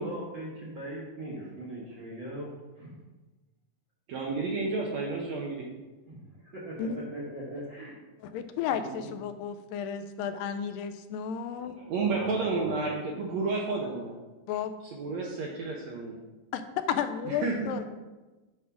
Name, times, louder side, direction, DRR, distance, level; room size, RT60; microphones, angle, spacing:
voice 1, 0.0-2.9 6.1-8.0 11.6-12.8, right 1 dB, 55° right, -6 dB, 1.3 m, -40 dB
voice 2, 4.1-5.7 8.9-9.0 11.9-14.1 14.9-16.2 17.3-17.7, right 3 dB, 70° right, -1 dB, 1.7 m, -31 dB
voice 3, 8.2-11.7 14.5-14.7 16.5-16.6 16.9-17.8, left 8 dB, 80° left, 9 dB, 2.2 m, -33 dB
9.4 x 3.6 x 5.9 m, 1.2 s
omnidirectional pair, 4.0 m